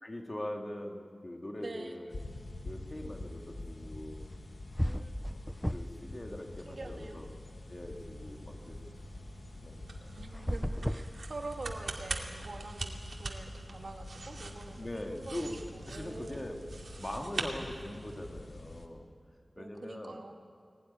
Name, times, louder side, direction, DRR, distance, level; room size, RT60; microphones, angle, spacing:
voice 1, 0.0-2.1 2.6-4.3 5.3-5.4 5.7-7.3 7.7-8.8 9.6-10.1 10.8-11.0 14.7-15.6 15.9-16.6 17.0-19.1 19.6-20.2, left 1 dB, 30° left, 3 dB, 2.4 m, -42 dB
voice 2, 1.6-2.0 4.8-5.2 6.7-7.2 10.2-16.5 19.6-20.4, right 2 dB, 60° right, 3 dB, 2.2 m, -45 dB
sound 1, 2.1-18.9, left 2 dB, 65° left, 1.9 m, -46 dB
sound 2, 4.4-4.5 4.8-6.1 6.4-7.5 10.3-11.9, equal, ahead, 0.5 m, -35 dB
sound 3, 7.5-18.3, right 3 dB, 80° right, 2.4 m, -44 dB
21.5 x 18.0 x 10.0 m, 2.2 s
wide cardioid pair, 85°, 0 cm